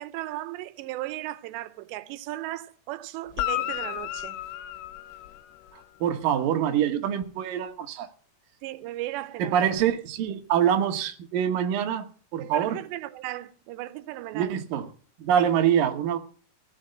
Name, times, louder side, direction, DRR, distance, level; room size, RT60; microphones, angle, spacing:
voice 1, 0.0-4.4 8.6-9.6 12.4-14.6 15.3-15.5, right 16 dB, 90° right, 3.0 m, -36 dB
Guitar, 3.3-5.9 9.7-9.8, left 14 dB, 85° left, 2.9 m, -33 dB
voice 2, 6.0-8.1 9.4-12.1 12.3-12.8 14.3-14.9 15.2-16.2, right 9 dB, 65° right, 2.7 m, -25 dB
15.0 x 6.6 x 8.0 m
omnidirectional pair, 4.9 m